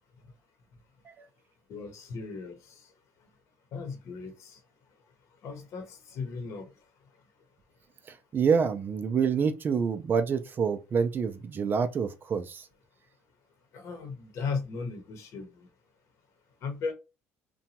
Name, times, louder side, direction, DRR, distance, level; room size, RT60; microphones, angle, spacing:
voice 1, 1.7-2.9 3.7-4.6 5.4-6.7 13.7-15.7 16.6-16.9, left 4 dB, 65° left, 0.9 m, -37 dB
voice 2, 8.3-12.7, right 6 dB, 40° right, 0.4 m, -27 dB
2.8 x 2.2 x 2.8 m
cardioid pair, 95°, 5 cm